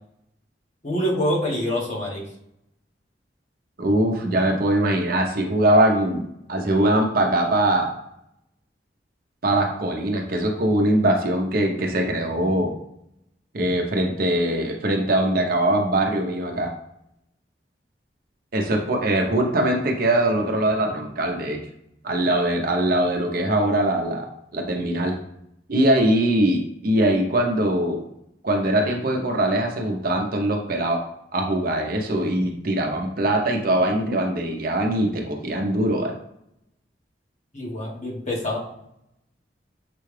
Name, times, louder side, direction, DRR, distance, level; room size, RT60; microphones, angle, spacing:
voice 1, 0.8-2.3 37.5-38.6, equal, 40° left, -3 dB, 1.2 m, -26 dB
voice 2, 3.8-6.2 6.5-7.9 9.4-12.7 13.5-16.7 18.5-21.6 22.0-24.3 24.5-25.1 25.7-28.0 28.4-31.0 31.3-36.1, right 1 dB, 55° right, 2 dB, 0.7 m, -22 dB
6.7 x 2.3 x 3.2 m, 0.77 s
head